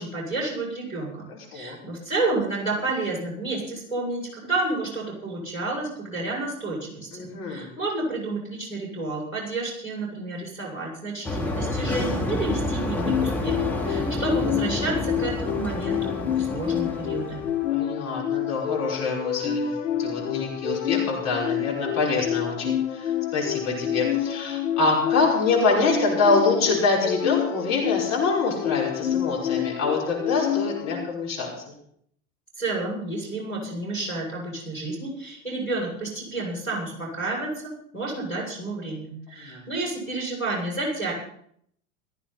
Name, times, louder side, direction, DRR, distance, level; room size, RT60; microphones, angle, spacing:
voice 1, 0.0-17.4 32.6-41.1, right 2 dB, 90° left, -1 dB, 7.0 m, -30 dB
voice 2, 1.3-1.8 7.1-7.7 17.7-19.7 20.0-31.7 39.4-39.6, left 3 dB, 40° left, -3 dB, 5.7 m, -25 dB
sound 1, 11.2-17.7, left 1 dB, 5° left, 2.8 m, -29 dB
sound 2, 13.0-31.1, left 10 dB, 60° left, 1.1 m, -28 dB
17.5 x 15.0 x 4.3 m, 0.66 s
figure-of-eight pair, 80°, 41 cm